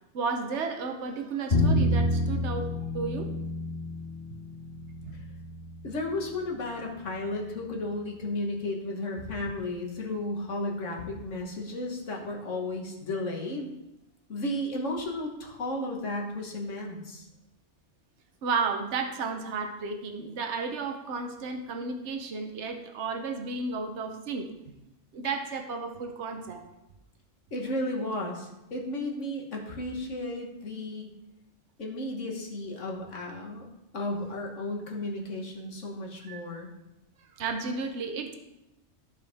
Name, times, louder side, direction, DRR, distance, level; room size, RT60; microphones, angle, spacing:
voice 1, 0.1-3.3 18.4-24.5 25.1-26.6 36.2-36.4 37.3-38.3, right 4 dB, 70° right, 5 dB, 1.2 m, -33 dB
Bowed string instrument, 1.5-7.7, left 1 dB, 50° left, 1.7 m, -30 dB
voice 2, 5.8-13.7 14.3-17.3 27.5-31.1 31.8-33.7 33.9-36.7, left 1 dB, 85° left, 0 dB, 1.7 m, -34 dB
14.5 x 4.9 x 3.5 m, 0.92 s
omnidirectional pair, 1.2 m